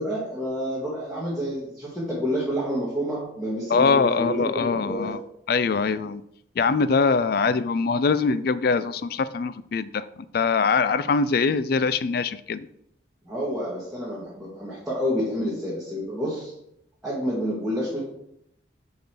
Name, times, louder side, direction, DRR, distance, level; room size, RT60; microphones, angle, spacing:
voice 1, 0.0-5.2 13.2-16.5 17.0-18.0, equal, 5° right, -8 dB, 1.6 m, -29 dB
voice 2, 3.7-5.2 5.5-6.2 6.6-12.7, left 4 dB, 50° left, 15 dB, 0.3 m, -23 dB
5.2 x 4.9 x 6.0 m, 0.76 s
head